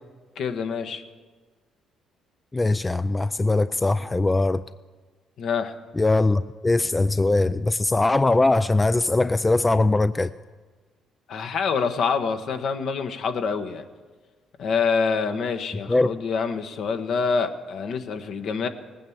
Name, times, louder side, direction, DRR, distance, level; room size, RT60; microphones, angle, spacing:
voice 1, 0.4-1.0 5.4-5.7 11.3-13.8 14.6-18.7, left 5 dB, 65° left, 7 dB, 1.1 m, -26 dB
voice 2, 2.5-4.6 6.0-10.3 15.9-16.1, left 2 dB, 20° left, 14 dB, 0.3 m, -21 dB
19.0 x 9.2 x 7.1 m, 1.4 s
cardioid pair, 85°, 0 cm